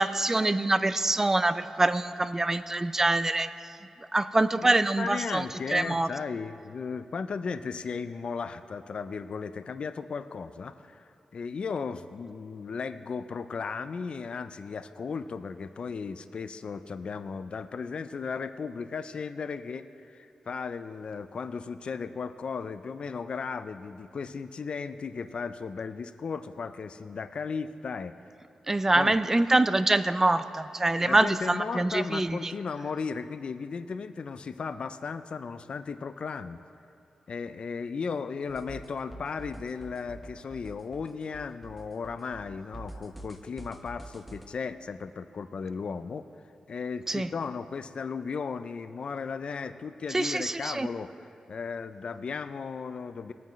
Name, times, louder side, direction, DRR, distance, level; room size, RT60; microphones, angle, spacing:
voice 1, 0.0-3.5 4.1-6.1 28.7-32.5 47.1-47.3 50.1-50.9, right 2 dB, 20° right, 12 dB, 0.4 m, -25 dB
voice 2, 4.6-28.1 29.0-29.2 31.0-36.6 37.3-46.3 46.7-51.1 51.5-53.3, left 5 dB, 60° left, 12 dB, 0.4 m, -36 dB
sound 1, 38.5-44.5, right 1 dB, ahead, 0.8 m, -46 dB
19.5 x 9.1 x 3.1 m, 2.6 s
wide cardioid pair, 90°, 2 cm